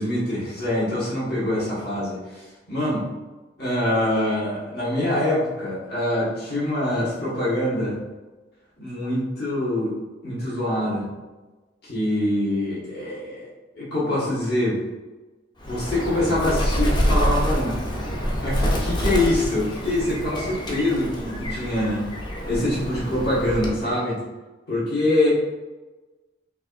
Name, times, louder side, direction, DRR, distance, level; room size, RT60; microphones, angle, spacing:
voice 1, 0.0-3.1 3.6-8.0 8.8-10.0 10.2-11.1 11.8-14.8 15.6-17.8 18.4-22.0 22.4-24.2 24.7-25.3, left 1 dB, 60° left, -8 dB, 1.5 m, -24 dB
Bird, 15.6-23.9, equal, 25° left, 0.6 m, -26 dB
5.9 x 2.5 x 2.5 m, 1.2 s
head